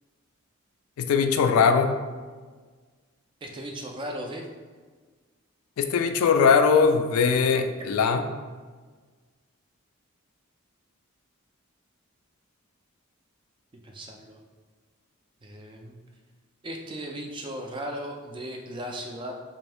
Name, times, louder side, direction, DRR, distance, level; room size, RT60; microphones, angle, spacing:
voice 1, 1.0-2.0 5.8-8.3, left 5 dB, 85° left, 7 dB, 0.3 m, -21 dB
voice 2, 3.4-4.5 13.8-14.4 15.4-16.0 16.6-19.3, equal, 25° right, 2 dB, 0.3 m, -36 dB
3.4 x 2.6 x 3.3 m, 1.4 s
head